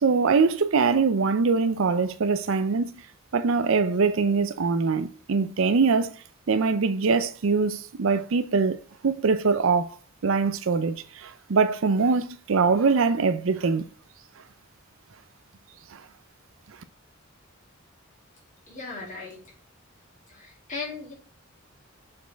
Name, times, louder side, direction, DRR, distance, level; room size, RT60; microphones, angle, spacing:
voice 1, 0.0-2.9 3.3-6.1 6.5-8.8 9.0-9.9 10.2-13.9 15.9-16.0, right 4 dB, 65° right, 0.5 m, -23 dB
voice 2, 18.7-19.5 20.3-21.1, left 4 dB, 35° left, 2.8 m, -37 dB
6.5 x 4.6 x 3.4 m
head